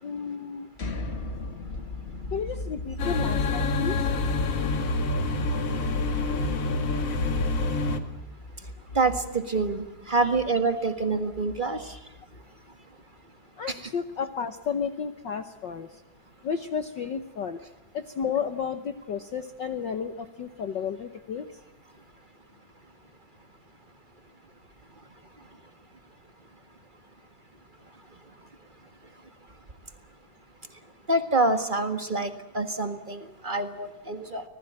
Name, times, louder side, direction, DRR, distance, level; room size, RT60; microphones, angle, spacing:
voice 1, 0.0-0.7 2.3-4.0 10.2-10.3 11.7-12.1 13.6-16.0 16.4-17.6 17.9-21.4, left 6 dB, 75° left, 9 dB, 1.0 m, -32 dB
sound 1, 0.7-12.6, left 2 dB, 35° left, 1.0 m, -38 dB
sound 2, 3.0-8.0, left 3 dB, 55° left, 2.8 m, -27 dB
voice 2, 8.9-11.8 13.7-13.8 31.1-34.4, right 3 dB, 30° right, 8 dB, 1.0 m, -26 dB
26.0 x 19.5 x 8.8 m, 0.95 s
omnidirectional pair, 3.4 m